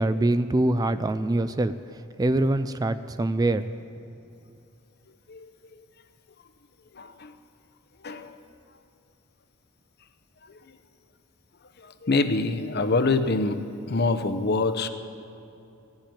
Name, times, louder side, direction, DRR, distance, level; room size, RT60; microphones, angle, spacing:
voice 1, 0.0-1.7 2.2-3.7, right 2 dB, 20° right, 12 dB, 0.3 m, -24 dB
voice 2, 6.9-7.3 8.0-8.3 10.5-10.6 11.8-14.9, left 3 dB, 50° left, 9 dB, 0.8 m, -25 dB
16.5 x 7.2 x 9.1 m, 2.8 s
head